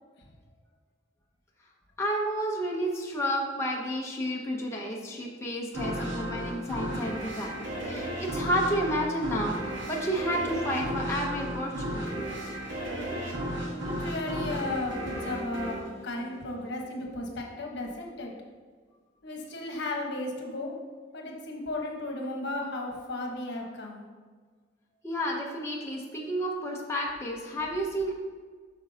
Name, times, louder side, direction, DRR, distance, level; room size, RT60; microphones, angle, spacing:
voice 1, 2.0-12.3 13.1-13.2 25.0-28.1, equal, 15° left, -2 dB, 0.7 m, -31 dB
sound 1, 5.7-16.9, equal, 75° right, 1.4 m, -34 dB
voice 2, 13.8-18.3 19.2-20.7 21.1-24.0, left 2 dB, 65° left, 0 dB, 1.1 m, -35 dB
8.2 x 5.9 x 2.8 m, 1.5 s
head